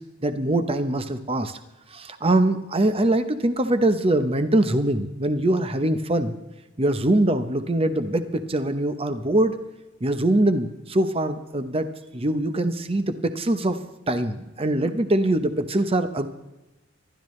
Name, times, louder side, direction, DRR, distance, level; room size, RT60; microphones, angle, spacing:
voice 1, 0.2-1.6 1.9-6.4 6.8-9.6 10.0-11.9 12.1-13.8 14.1-16.3, right 1 dB, 30° right, 9 dB, 0.9 m, -23 dB
26.0 x 12.5 x 3.2 m, 1.0 s
head